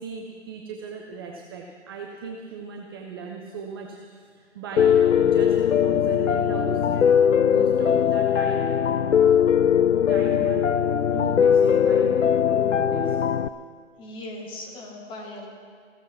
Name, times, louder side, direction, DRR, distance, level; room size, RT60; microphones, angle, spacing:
voice 1, 0.0-7.1 7.4-8.7 9.0-9.6 10.1-13.2, right 5 dB, 20° right, 1 dB, 0.6 m, -38 dB
Piano, 4.8-13.5, left 8 dB, 80° left, 0.6 m, -20 dB
voice 2, 14.0-15.5, left 1 dB, 15° left, 1 dB, 1.6 m, -38 dB
15.5 x 14.0 x 5.9 m, 2.1 s
figure-of-eight pair, 140°, 37 cm